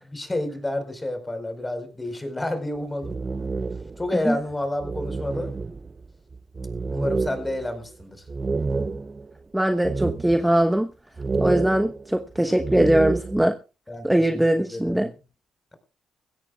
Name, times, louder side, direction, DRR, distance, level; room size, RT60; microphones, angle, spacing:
voice 1, 0.1-3.1 4.0-5.6 6.9-8.2 13.9-15.2, left 1 dB, 15° left, 4.7 m, -30 dB
sound 1, 2.8-4.1 4.5-4.6 4.8-9.3 9.8-10.6 11.2-13.5, right 3 dB, 25° right, 0.6 m, -29 dB
voice 2, 9.5-10.9 11.4-13.5 14.0-15.1, right 1 dB, 5° right, 1.1 m, -21 dB
22.0 x 16.5 x 2.4 m
cardioid pair, 115°, 0 cm